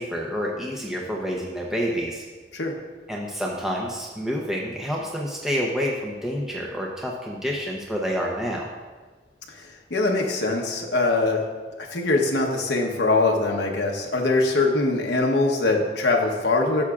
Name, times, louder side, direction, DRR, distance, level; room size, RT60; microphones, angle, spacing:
voice 1, 0.0-2.2 3.1-8.7, equal, 5° right, -3 dB, 0.7 m, -28 dB
voice 2, 9.6-11.4 11.8-16.9, left 2 dB, 70° left, 1 dB, 1.0 m, -22 dB
13.0 x 7.1 x 2.4 m, 1.4 s
head